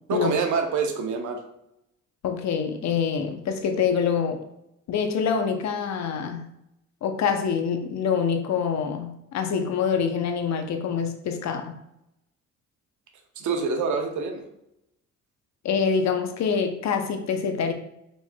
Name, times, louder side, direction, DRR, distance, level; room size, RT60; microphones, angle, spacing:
voice 1, 0.1-1.4 13.4-14.5, right 5 dB, 75° right, 4 dB, 0.8 m, -26 dB
voice 2, 2.2-4.4 4.9-6.4 7.0-11.7 15.6-17.7, left 6 dB, 65° left, 6 dB, 0.7 m, -25 dB
4.4 x 4.3 x 2.3 m, 0.81 s
cardioid pair, 90°, 30 cm